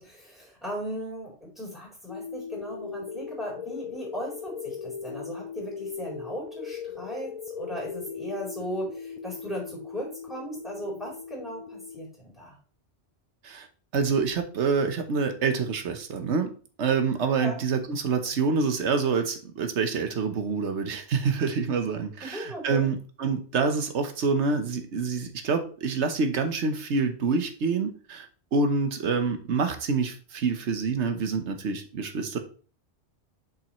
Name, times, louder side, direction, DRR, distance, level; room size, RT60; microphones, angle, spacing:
voice 1, 0.0-12.6 17.4-17.6 22.2-22.9, equal, ahead, -5 dB, 3.9 m, -37 dB
sound 1, 2.1-12.1, left 6 dB, 50° left, 0.4 m, -39 dB
voice 2, 13.9-16.5 16.8-28.3 28.5-32.4, right 4 dB, 75° right, 7 dB, 1.3 m, -27 dB
7.2 x 5.5 x 3.0 m, 0.39 s
omnidirectional pair, 1.2 m